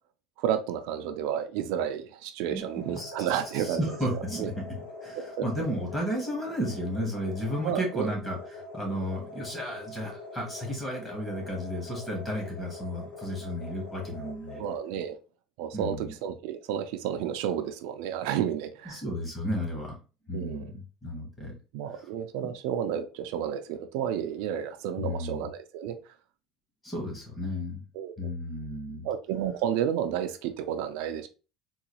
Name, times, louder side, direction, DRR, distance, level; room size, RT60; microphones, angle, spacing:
voice 1, 0.4-3.8 4.4-4.5 5.4-5.5 7.6-8.1 14.6-15.2 15.6-19.0 20.3-20.7 21.7-26.0 27.9-28.3 29.0-31.3, right 9 dB, 75° right, 7 dB, 0.4 m, -31 dB
voice 2, 2.5-4.6 5.0-14.6 15.7-16.1 18.8-20.0 20.3-21.5 21.9-22.1 25.0-25.4 26.8-27.8 28.2-29.1, equal, 10° left, -1 dB, 1.0 m, -33 dB
sound 1, 2.6-14.8, left 2 dB, 70° left, 1.3 m, -44 dB
3.7 x 2.3 x 2.9 m, 0.33 s
cardioid pair, 170°, 0 cm